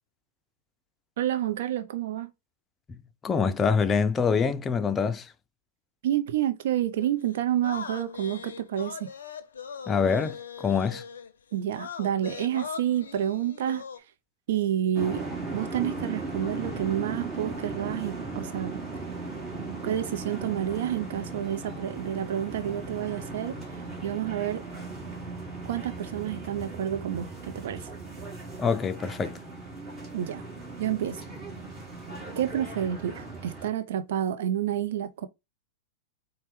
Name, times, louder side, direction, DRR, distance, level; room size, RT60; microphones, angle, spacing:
voice 1, 1.2-2.3 6.0-9.0 11.5-13.8 14.5-15.2 15.5-18.8 19.8-23.6 24.0-24.6 25.7-27.3 27.5-27.8 30.1-30.4 30.8-31.2 32.4-35.3, right 11 dB, 60° right, 0.6 m, -29 dB
voice 2, 3.2-5.3 9.9-11.0 28.6-29.4, left 5 dB, 20° left, 0.4 m, -25 dB
sound 1, 7.0-11.3 11.7-14.0, left 6 dB, 75° left, 0.5 m, -40 dB
sound 2, 14.9-33.7, right 3 dB, 25° right, 1.7 m, -37 dB
4.2 x 2.2 x 3.4 m
figure-of-eight pair, 100°, 0 cm